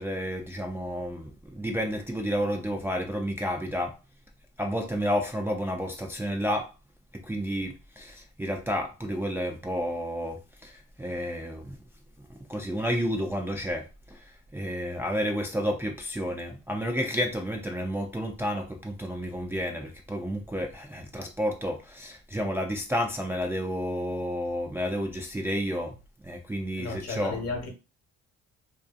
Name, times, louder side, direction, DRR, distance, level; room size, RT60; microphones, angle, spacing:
voice 1, 0.0-3.9 4.6-6.7 7.3-10.7 11.0-11.8 12.5-13.8 14.5-25.9 26.2-27.4, equal, 10° right, 0.4 m, -31 dB
voice 2, 26.8-27.7, left 4 dB, 55° left, 1.1 m, -33 dB
2.5 x 2.3 x 2.4 m
cardioid pair, 90°, 30 cm